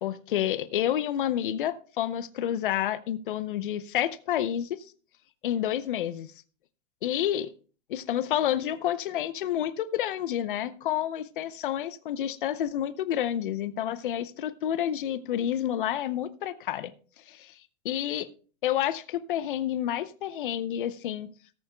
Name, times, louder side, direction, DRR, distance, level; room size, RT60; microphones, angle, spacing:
voice 1, 0.0-4.8 5.4-6.3 7.0-7.5 7.9-16.9 17.3-17.5 17.8-18.3 18.6-21.3, left 11 dB, 40° left, 0.6 m, -29 dB
18.5 x 8.6 x 2.2 m
hypercardioid pair, 170°, 40 cm